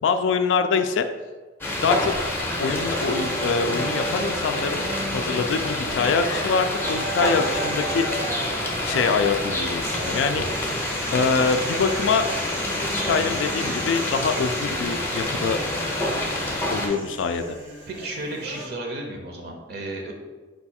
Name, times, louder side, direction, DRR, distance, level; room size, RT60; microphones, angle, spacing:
voice 1, 0.0-1.1 1.8-2.1 2.6-8.1 8.9-10.5 11.1-12.3 12.9-15.6 16.7-17.6, left 5 dB, 80° left, 8 dB, 0.3 m, -24 dB
sound 1, 1.6-16.9, left 1 dB, 10° left, 0.5 m, -27 dB
sound 2, 2.6-18.7, right 1 dB, 75° right, 1.0 m, -35 dB
voice 2, 17.9-20.1, right 2 dB, 55° right, 1 dB, 0.6 m, -33 dB
4.6 x 2.3 x 4.2 m, 1.3 s
head